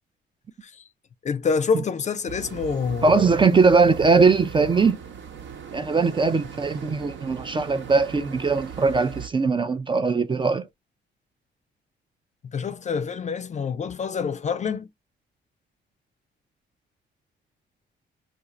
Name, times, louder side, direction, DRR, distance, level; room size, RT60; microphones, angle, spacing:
voice 1, 1.2-3.3 12.5-14.9, left 5 dB, 35° left, 0.4 m, -27 dB
sound 1, 2.2-9.3, right 7 dB, 65° right, 0.9 m, -39 dB
voice 2, 3.0-5.0 5.7-10.7, right 4 dB, 25° right, 0.4 m, -20 dB
2.5 x 2.4 x 4.0 m
cardioid pair, 90°, 20 cm